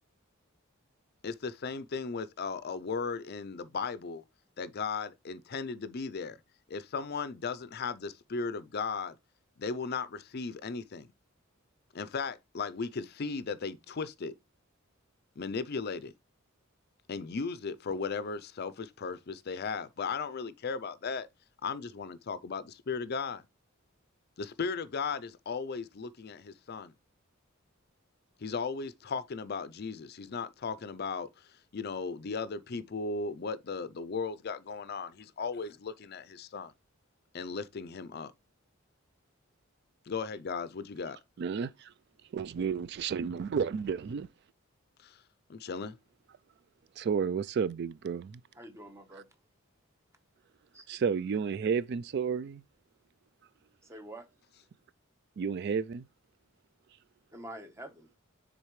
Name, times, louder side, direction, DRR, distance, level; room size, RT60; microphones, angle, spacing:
voice 1, 1.2-4.2 4.6-6.4 6.7-9.1 9.6-11.1 11.9-14.3 15.4-16.1 17.1-21.3 21.6-23.4 24.4-26.9 28.4-31.3 31.7-36.7 37.3-38.3 40.1-41.2 45.0-45.2 45.5-46.0, left 5 dB, 50° left, 0.5 m, -36 dB
voice 2, 41.4-41.9 42.3-44.3 47.0-48.3 50.9-52.6 55.4-56.0, right 6 dB, 55° right, 0.3 m, -31 dB
voice 3, 48.5-49.3 50.7-50.9 53.8-54.3 57.3-58.1, right 1 dB, 15° right, 1.1 m, -46 dB
9.7 x 3.9 x 3.1 m
head